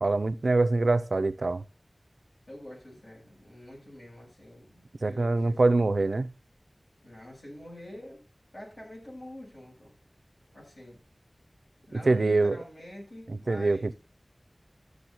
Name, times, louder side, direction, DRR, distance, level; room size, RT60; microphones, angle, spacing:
voice 1, 0.0-1.6 5.0-6.3 12.0-12.6 13.3-13.9, right 3 dB, 85° right, 0.5 m, -24 dB
voice 2, 2.5-5.6 7.0-8.2 8.5-9.9 10.5-11.0 11.9-13.9, left 1 dB, 65° left, 7.5 m, -46 dB
13.5 x 6.8 x 4.4 m
wide cardioid pair, 60°, 0 cm